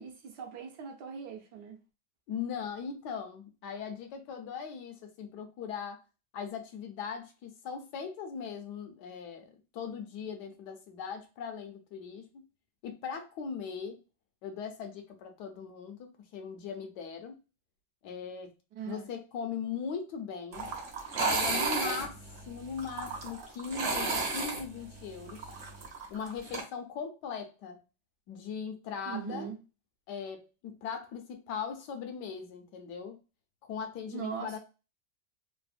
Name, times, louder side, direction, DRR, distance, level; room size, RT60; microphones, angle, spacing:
voice 1, 0.0-1.8 18.7-19.1 29.1-29.6 34.1-34.6, right 7 dB, 75° right, 1.2 m, -40 dB
voice 2, 2.3-6.0 6.3-12.4 12.8-14.0 14.4-17.4 18.0-18.5 18.9-20.7 21.2-25.5 26.1-27.8 28.3-29.5 30.1-33.2 33.6-34.6, left 6 dB, 75° left, 1.1 m, -39 dB
sound 1, 20.5-26.6, right 4 dB, 55° right, 0.9 m, -33 dB
3.3 x 2.0 x 2.4 m
omnidirectional pair, 1.9 m